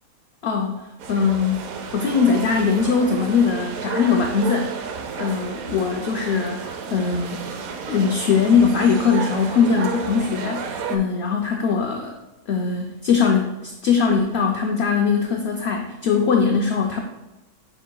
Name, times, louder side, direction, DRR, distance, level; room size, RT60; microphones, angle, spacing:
voice 1, 0.4-4.7 5.2-7.4 7.9-12.1 12.5-17.0, left 5 dB, 65° left, 3 dB, 0.7 m, -21 dB
sound 1, 1.0-11.0, right 5 dB, 75° right, 1.1 m, -32 dB
9.3 x 4.6 x 2.2 m, 1.0 s
omnidirectional pair, 1.5 m